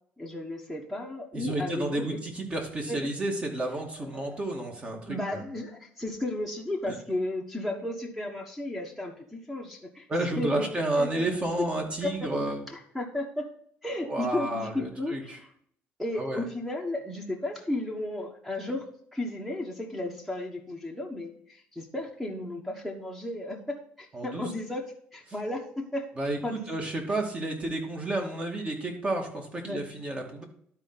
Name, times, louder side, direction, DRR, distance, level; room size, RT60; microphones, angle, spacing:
voice 1, 0.2-2.2 2.9-3.1 4.0-4.4 5.1-10.1 10.4-10.7 11.0-11.1 11.6-11.7 12.0-12.2 12.7-13.5 13.8-15.4 16.0-26.0 26.4-26.7 29.6-29.8, left 1 dB, ahead, 1 dB, 1.2 m, -34 dB
voice 2, 1.3-5.4 6.9-7.0 10.1-12.6 14.1-15.4 16.2-16.4 24.1-24.5 26.2-30.4, right 2 dB, 25° right, 2 dB, 2.0 m, -31 dB
12.0 x 4.5 x 4.0 m, 0.65 s
cardioid pair, 115°, 4 cm